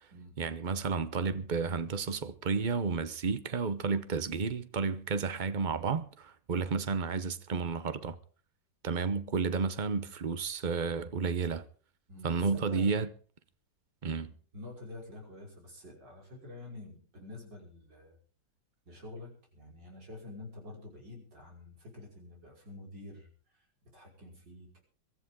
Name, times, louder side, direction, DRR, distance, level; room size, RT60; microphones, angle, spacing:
voice 1, 0.4-8.2 8.8-11.7 12.2-13.1 14.0-14.3, right 5 dB, 40° right, 0.7 m, -32 dB
voice 2, 12.1-13.0 14.5-18.2 18.9-23.7 23.9-24.8, left 2 dB, 65° right, 6.4 m, -48 dB
23.0 x 14.0 x 3.8 m
omnidirectional pair, 2.1 m